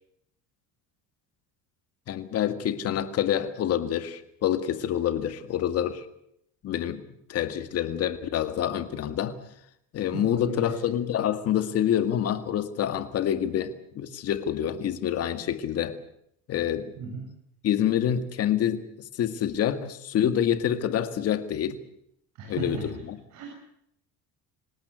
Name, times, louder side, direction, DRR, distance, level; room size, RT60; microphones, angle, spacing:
voice 1, 2.1-6.1 6.6-7.0 7.3-9.4 9.9-16.0 16.5-16.9 17.6-18.8 19.1-21.8 22.5-23.2, left 10 dB, 45° left, 9 dB, 2.1 m, -27 dB
voice 2, 10.1-10.7 17.0-17.2 22.4-22.9 23.3-23.5, right 3 dB, 55° right, 2 dB, 6.7 m, -35 dB
26.5 x 18.0 x 8.1 m, 0.75 s
cardioid pair, 145°, 34 cm